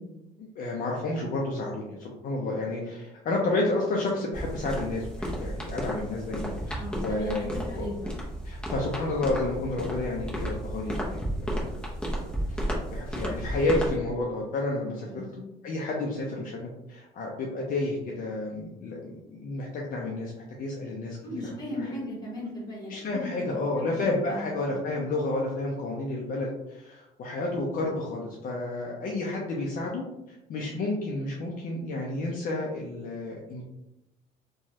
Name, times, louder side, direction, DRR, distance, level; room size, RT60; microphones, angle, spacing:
voice 1, 0.4-7.9 8.4-11.2 11.5-11.9 12.9-15.2 15.6-20.3 20.6-21.2 21.4-21.5 22.9-30.0 30.5-33.6, left 2 dB, 55° left, -2 dB, 0.5 m, -31 dB
sound 1, 4.3-14.0, equal, 5° left, 0.7 m, -33 dB
voice 2, 6.8-8.1 15.0-15.4 21.2-23.3 23.8-23.9 24.2-24.5, equal, 25° left, -4 dB, 1.3 m, -36 dB
2.9 x 2.3 x 2.7 m, 0.92 s
cardioid pair, 110°, 17 cm